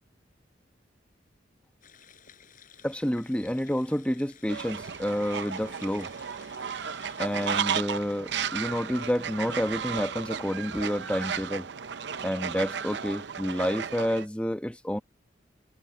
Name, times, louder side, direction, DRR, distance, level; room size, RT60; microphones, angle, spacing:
sound 1, 1.8-7.6, left 8 dB, 45° left, 6.7 m, -55 dB
voice 1, 2.8-6.1 7.2-11.7 12.2-15.0, equal, 5° left, 1.0 m, -29 dB
Fowl, 4.5-14.2, right 7 dB, 65° right, 0.7 m, -34 dB
head